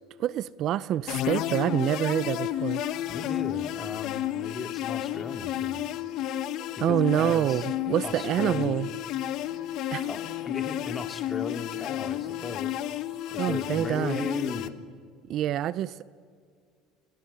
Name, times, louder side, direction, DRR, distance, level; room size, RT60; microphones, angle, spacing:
voice 1, 0.2-2.8 6.8-8.9 9.9-10.1 13.4-14.2 15.3-16.0, right 11 dB, 55° right, 19 dB, 0.6 m, -26 dB
sound 1, 1.1-14.7, left 12 dB, 60° left, 1.1 m, -32 dB
voice 2, 3.1-5.9 6.8-7.7 8.0-8.9 10.1-12.8 13.3-14.7, left 4 dB, 25° left, 7 dB, 2.5 m, -37 dB
28.5 x 24.0 x 7.0 m, 2.1 s
supercardioid pair, 90°, 0 cm